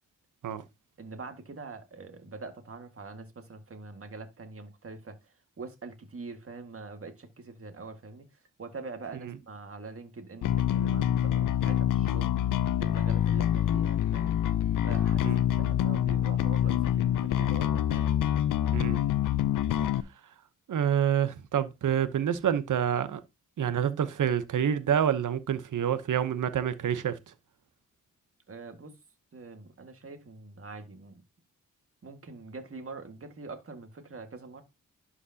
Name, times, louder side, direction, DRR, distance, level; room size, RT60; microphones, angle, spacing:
voice 1, 1.0-8.3 8.6-12.3 12.8-14.3 14.8-18.1 28.5-29.0 29.3-31.2 32.0-34.6, right 3 dB, 45° right, 1.8 m, -44 dB
Bass guitar, 10.4-20.0, left 11 dB, 75° left, 0.6 m, -26 dB
voice 2, 18.7-19.0 20.7-23.2 23.6-27.2, right 9 dB, 70° right, 0.9 m, -27 dB
11.5 x 5.0 x 2.8 m
cardioid pair, 75°, 32 cm